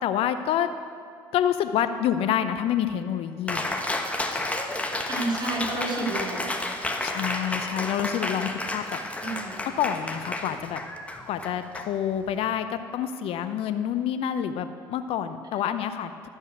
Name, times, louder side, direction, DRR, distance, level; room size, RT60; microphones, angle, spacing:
voice 1, 0.0-0.7 1.3-3.7 7.0-9.0 9.8-10.8 11.3-16.3, left 9 dB, 65° left, 10 dB, 0.6 m, -27 dB
Cheering, 3.5-12.4, left 2 dB, 10° left, 1.2 m, -31 dB
voice 2, 5.1-6.5 9.2-9.7 15.5-15.7, right 2 dB, 40° right, -2 dB, 3.2 m, -30 dB
12.0 x 5.4 x 8.1 m, 2.2 s
hypercardioid pair, 70°, 11 cm